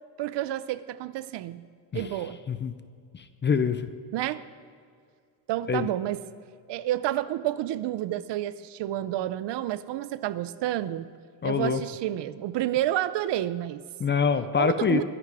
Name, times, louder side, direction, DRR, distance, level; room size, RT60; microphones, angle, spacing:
voice 1, 0.2-1.6 1.9-2.4 4.1-4.4 5.5-6.2 6.7-11.1 11.4-13.8 14.6-15.0, right 13 dB, 60° right, 16 dB, 0.7 m, -29 dB
voice 2, 3.1-3.9 5.7-5.9 11.4-11.8 14.0-15.0, left 6 dB, 25° left, 11 dB, 0.5 m, -25 dB
22.5 x 11.0 x 4.8 m, 2.2 s
cardioid pair, 150°, 49 cm